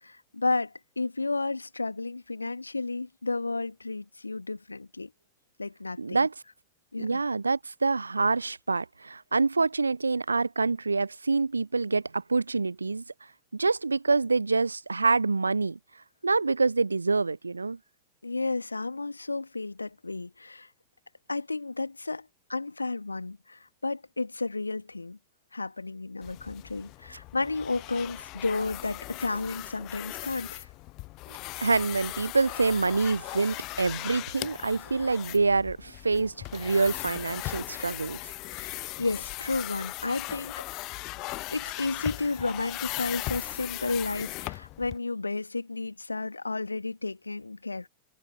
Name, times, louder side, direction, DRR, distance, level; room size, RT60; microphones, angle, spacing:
voice 1, 0.0-5.1 5.6-6.3 6.9-7.2 18.2-20.7 21.3-25.2 25.5-30.7 38.5-40.6 41.5-47.9, left 3 dB, 80° left, 1.6 m, -32 dB
voice 2, 6.0-6.3 7.0-13.0 13.5-15.8 16.2-17.8 31.3-38.2, right 3 dB, 80° right, 0.3 m, -26 dB
sound 1, 26.2-45.0, left 22 dB, 40° left, 0.6 m, -38 dB
figure-of-eight pair, 90°, 0 cm